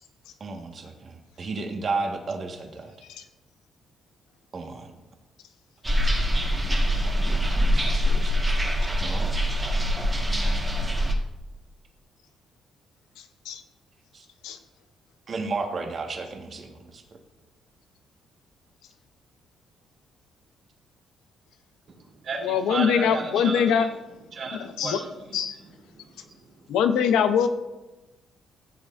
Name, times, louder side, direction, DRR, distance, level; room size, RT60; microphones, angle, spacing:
voice 1, 0.4-2.9 4.5-4.9 7.2-8.6 9.0-9.3 14.1-14.2 15.3-17.0, right 3 dB, 45° right, 3 dB, 1.5 m, -33 dB
sound 1, 5.8-11.1, equal, 15° right, 1.5 m, -24 dB
voice 2, 13.2-13.6 14.4-14.6 22.4-23.9 24.5-25.0 25.3-25.6 26.7-27.5, left 7 dB, 85° left, 9 dB, 0.7 m, -23 dB
voice 3, 21.9-23.9 24.3-25.4 25.9-26.3, right 3 dB, 65° right, -3 dB, 3.2 m, -34 dB
15.0 x 7.4 x 2.6 m, 1.1 s
cardioid pair, 90°, 0 cm